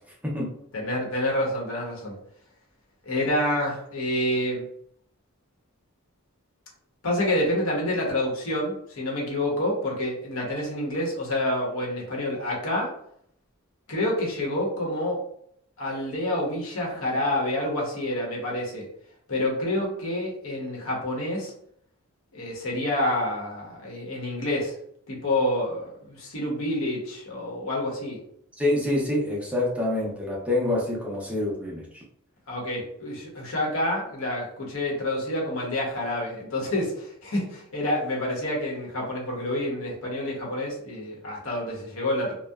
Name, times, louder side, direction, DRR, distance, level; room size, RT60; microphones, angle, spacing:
voice 1, 0.7-2.1 3.0-4.6 7.0-12.9 13.9-15.2 15.8-18.9 19.3-21.5 22.3-24.7 25.1-28.2 32.5-42.4, left 1 dB, 65° left, -2 dB, 0.8 m, -28 dB
voice 2, 28.6-32.0, left 1 dB, 5° right, -4 dB, 0.5 m, -26 dB
2.7 x 2.0 x 2.2 m, 0.67 s
head